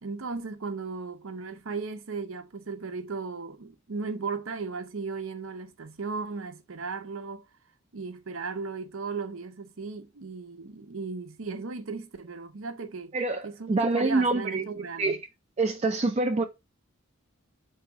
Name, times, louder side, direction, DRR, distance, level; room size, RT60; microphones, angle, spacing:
voice 1, 0.0-7.5 7.9-13.1 13.4-15.2, right 4 dB, 80° right, 0.7 m, -36 dB
voice 2, 13.1-14.7 15.0-15.2 15.6-16.4, right 3 dB, 30° right, 0.4 m, -26 dB
3.9 x 2.8 x 4.7 m
head